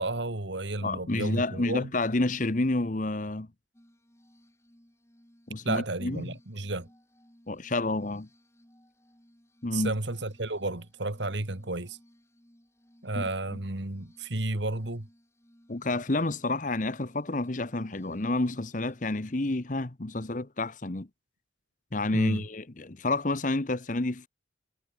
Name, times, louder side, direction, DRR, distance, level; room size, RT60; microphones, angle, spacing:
voice 1, 0.0-1.9 5.6-6.9 9.7-12.0 13.0-15.1 22.1-22.5, right 2 dB, 70° right, 2.2 m, -32 dB
voice 2, 0.8-3.5 5.5-6.2 7.5-8.3 9.6-9.9 13.1-13.3 15.7-21.1 21.9-24.3, left 2 dB, 40° left, 1.0 m, -29 dB
Glass, 3.7-19.5, equal, 15° left, 4.4 m, -61 dB
head